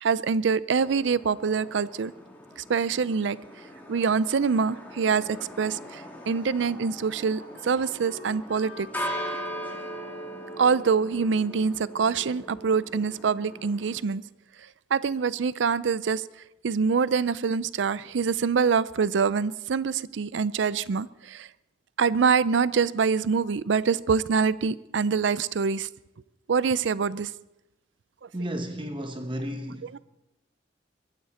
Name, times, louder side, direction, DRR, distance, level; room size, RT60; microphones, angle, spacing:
voice 1, 0.0-2.1 2.6-3.4 3.9-8.9 10.6-14.2 14.9-16.2 16.6-21.5 22.0-25.9 26.5-27.3 29.8-30.0, right 5 dB, 75° right, 0.5 m, -25 dB
sound 1, 0.7-14.0, equal, 10° left, 2.7 m, -40 dB
Wind instrument woodwind instrument, 6.1-12.4, equal, 55° left, 4.6 m, -50 dB
voice 2, 28.3-30.0, equal, 25° right, 0.9 m, -33 dB
22.5 x 14.5 x 4.2 m
head